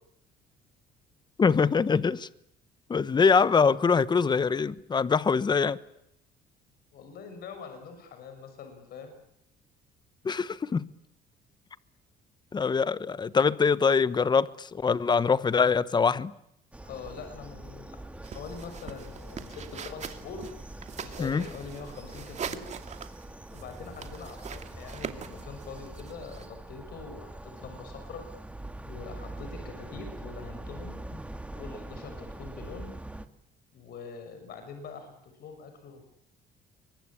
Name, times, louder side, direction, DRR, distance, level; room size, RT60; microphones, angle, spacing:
voice 1, 1.4-2.3 2.9-5.8 10.2-10.9 12.5-16.3 21.2-21.4, left 5 dB, 25° left, 1.0 m, -24 dB
voice 2, 6.9-9.2 16.8-18.0 18.3-20.4 21.0-22.6 23.5-28.2 28.8-31.0 31.6-32.9 33.7-36.0, left 5 dB, 65° left, 6.3 m, -43 dB
sound 1, 16.7-33.3, right 1 dB, 5° right, 1.9 m, -43 dB
sound 2, 18.2-26.5, right 7 dB, 45° right, 2.5 m, -43 dB
27.5 x 24.0 x 8.7 m
cardioid pair, 110°, 17 cm